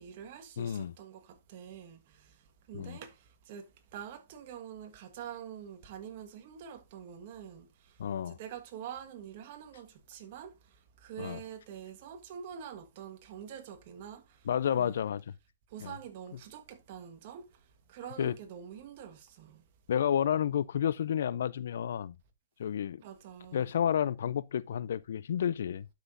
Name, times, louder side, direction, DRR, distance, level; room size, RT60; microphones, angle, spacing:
voice 1, 0.0-15.0 15.7-19.7 23.0-23.7, right 9 dB, 45° right, 1.4 m, -46 dB
voice 2, 0.6-0.9 2.7-3.0 8.0-8.4 11.2-11.4 14.5-15.2 15.8-15.9 18.2-18.3 19.9-22.1 22.6-23.0 23.5-25.9, left 9 dB, 70° left, 0.4 m, -30 dB
11.5 x 6.0 x 2.6 m
hypercardioid pair, 140°, 0 cm